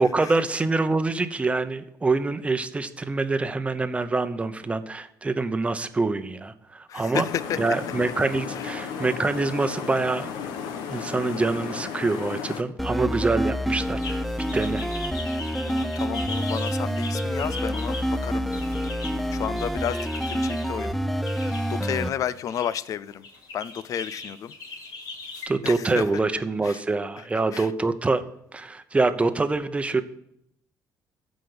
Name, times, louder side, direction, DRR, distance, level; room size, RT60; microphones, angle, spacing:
voice 1, 0.0-7.3 7.6-10.3 10.9-14.2 14.5-14.8 25.5-28.2 28.5-30.0, right 3 dB, 20° right, 0.9 m, -25 dB
voice 2, 6.9-7.6 8.5-8.7 15.6-18.5 19.3-21.0 21.7-23.3 23.5-24.5 25.6-26.0 26.6-26.8 27.5-27.7, left 9 dB, 55° left, 0.5 m, -32 dB
sound 1, 7.2-12.6, left 7 dB, 90° left, 1.2 m, -34 dB
sound 2, 12.8-22.1, equal, ahead, 0.6 m, -27 dB
sound 3, 14.0-20.7 21.2-21.9 22.3-22.7 23.2-25.5, left 3 dB, 75° left, 3.6 m, -39 dB
14.5 x 5.2 x 8.0 m
cardioid pair, 110°, 7 cm